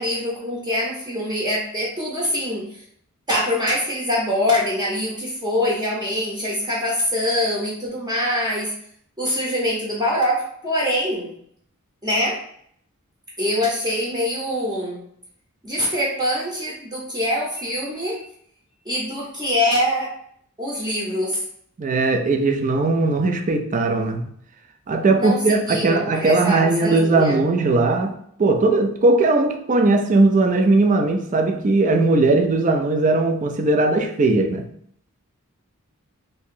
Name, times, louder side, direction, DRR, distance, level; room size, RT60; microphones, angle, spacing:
voice 1, 0.0-2.6 3.3-8.7 9.2-11.3 12.0-12.4 13.4-15.0 15.6-18.2 18.9-20.1 20.6-21.4 25.2-27.4, left 1 dB, 20° right, 0.8 m, -24 dB
voice 2, 21.8-24.3 24.9-34.7, right 3 dB, 35° right, 0.4 m, -19 dB
3.0 x 2.7 x 3.7 m
head